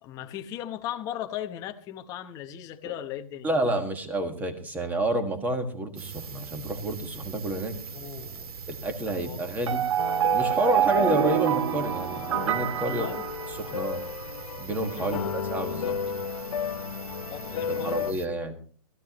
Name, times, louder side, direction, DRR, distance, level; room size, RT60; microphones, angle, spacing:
voice 1, 0.0-3.5 7.9-8.5 9.0-9.4 12.8-13.2 15.0-15.3 17.3-18.0, left 11 dB, 20° left, 0.9 m, -37 dB
voice 2, 3.4-7.7 8.7-9.8 10.3-13.1 13.5-14.0 14.6-15.9 17.7-18.6, right 1 dB, 10° right, 1.6 m, -29 dB
sound 1, 6.0-18.3, right 5 dB, 75° right, 1.8 m, -42 dB
sound 2, 9.7-14.0, right 11 dB, 50° right, 0.7 m, -26 dB
sound 3, 10.0-18.1, left 7 dB, 65° left, 1.0 m, -34 dB
20.0 x 14.0 x 3.0 m
hypercardioid pair, 160°, 19 cm